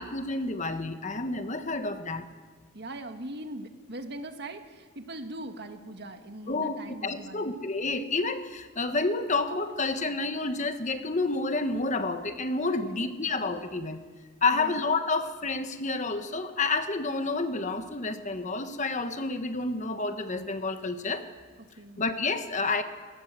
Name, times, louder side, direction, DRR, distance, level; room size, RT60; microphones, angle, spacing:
voice 1, 0.0-2.3 6.5-6.8 7.0-14.0 14.4-21.2 22.0-22.8, left 3 dB, 35° left, 8 dB, 1.3 m, -29 dB
voice 2, 2.7-7.5 12.8-13.1 14.5-14.8 21.6-22.0, right 1 dB, 50° right, 6 dB, 1.8 m, -41 dB
22.5 x 19.5 x 7.6 m, 1.4 s
head